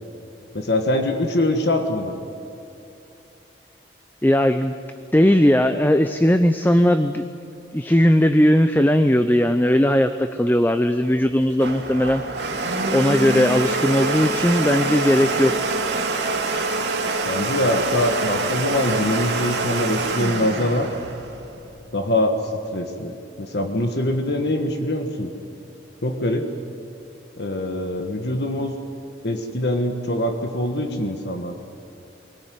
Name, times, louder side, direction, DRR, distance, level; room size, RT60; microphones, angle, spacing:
voice 1, 0.5-2.2 17.2-20.9 21.9-25.3 26.0-26.5 27.4-28.8 29.2-31.5, left 1 dB, 65° left, 5 dB, 1.5 m, -23 dB
voice 2, 4.2-4.7 5.1-7.3 7.7-12.2 12.9-15.5, equal, 10° left, 9 dB, 0.5 m, -18 dB
Domestic sounds home sounds, 11.2-21.9, right 3 dB, 75° right, 2.5 m, -25 dB
24.0 x 18.0 x 9.5 m, 2.6 s
head